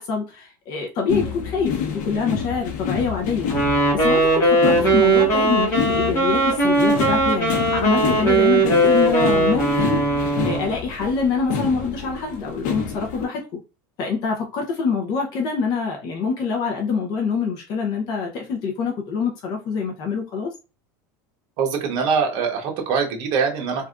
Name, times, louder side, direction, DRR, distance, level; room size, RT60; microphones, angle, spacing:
voice 1, 0.0-10.0 10.4-13.4 14.0-20.5, left 5 dB, 45° left, 0.6 m, -25 dB
sound 1, 1.1-13.2, left 6 dB, 70° left, 1.0 m, -29 dB
Wind instrument woodwind instrument, 3.5-10.7, right 2 dB, 25° left, 1.2 m, -19 dB
voice 2, 21.6-23.9, right 6 dB, 50° right, 1.0 m, -23 dB
3.4 x 2.5 x 2.4 m
cardioid pair, 160°, 10 cm